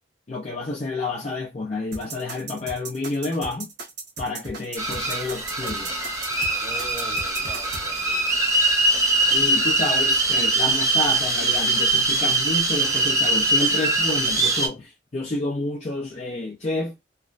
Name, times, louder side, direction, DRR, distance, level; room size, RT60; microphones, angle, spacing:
voice 1, 0.3-3.7 4.2-6.0 9.3-16.9, left 2 dB, 35° left, 0.5 m, -29 dB
sound 1, 1.9-7.8, right 3 dB, 60° right, 1.1 m, -36 dB
sound 2, 4.8-14.7, right 2 dB, 15° right, 0.5 m, -22 dB
voice 2, 6.4-8.5, equal, 15° left, 0.9 m, -42 dB
3.1 x 2.1 x 2.5 m
head